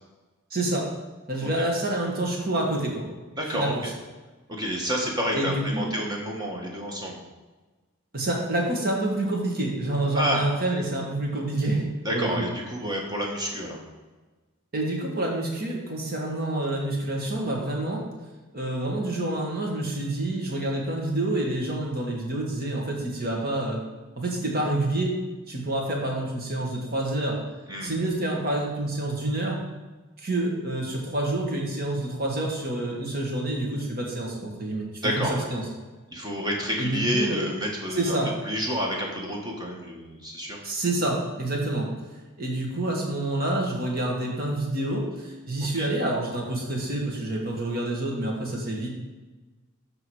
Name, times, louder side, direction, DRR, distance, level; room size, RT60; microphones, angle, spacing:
voice 1, 0.5-0.9 1.3-3.1 3.5-3.8 5.3-5.9 8.1-11.8 12.1-12.4 14.7-18.0 18.5-23.8 24.2-25.2 25.5-27.4 27.8-29.6 30.2-35.6 36.8-37.4 37.9-38.3 40.6-41.9 42.4-48.9, right 1 dB, 45° right, -1 dB, 1.6 m, -28 dB
voice 2, 3.3-3.7 4.5-7.2 10.1-10.4 12.0-13.8 27.7-27.9 35.0-35.5 36.1-38.2 38.4-40.6 45.6-45.9, equal, 20° right, -1 dB, 1.3 m, -29 dB
11.5 x 3.9 x 4.8 m, 1.2 s
head